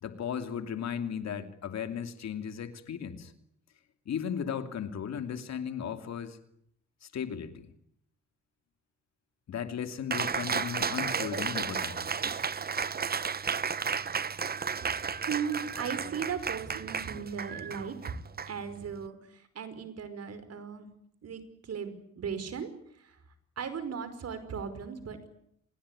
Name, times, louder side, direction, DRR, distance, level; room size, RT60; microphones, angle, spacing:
voice 1, 0.0-3.3 4.1-6.4 7.0-7.7 9.5-12.1, left 8 dB, 60° left, 8 dB, 2.9 m, -36 dB
Cheering, 10.1-19.1, right 6 dB, 30° right, 1.0 m, -33 dB
voice 2, 15.2-18.2 18.5-20.9 21.2-23.2 23.6-25.2, right 6 dB, 55° right, 12 dB, 5.1 m, -37 dB
27.0 x 20.5 x 10.0 m, 0.73 s
cardioid pair, 90°, 30 cm